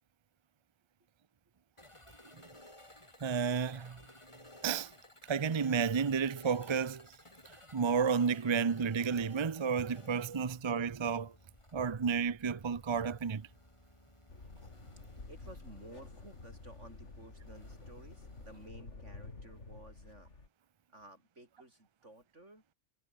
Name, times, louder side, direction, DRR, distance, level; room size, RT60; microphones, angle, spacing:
sound 1, 1.8-18.7, left 1 dB, 25° left, 3.9 m, -58 dB
voice 1, 3.2-4.0 4.6-4.9 5.3-7.1 7.7-11.3 11.7-13.5, right 6 dB, 30° right, 0.5 m, -31 dB
sound 2, 14.3-20.5, left 3 dB, 70° left, 3.4 m, -50 dB
voice 2, 15.0-20.3 20.9-22.6, right 1 dB, 75° right, 7.7 m, -55 dB
omnidirectional pair, 1.2 m